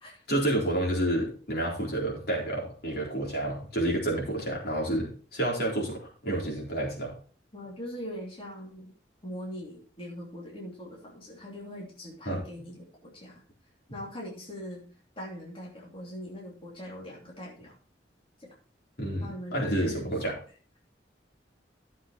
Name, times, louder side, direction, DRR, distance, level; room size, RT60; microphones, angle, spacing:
voice 1, 0.3-7.1 12.3-12.4 19.0-20.3, right 1 dB, 65° left, -2 dB, 4.0 m, -29 dB
voice 2, 7.5-8.9 9.2-13.4 13.9-14.8 15.2-17.8 18.4-18.6 19.2-20.4, equal, 30° left, -4 dB, 3.0 m, -41 dB
13.5 x 7.5 x 3.1 m, 0.39 s
head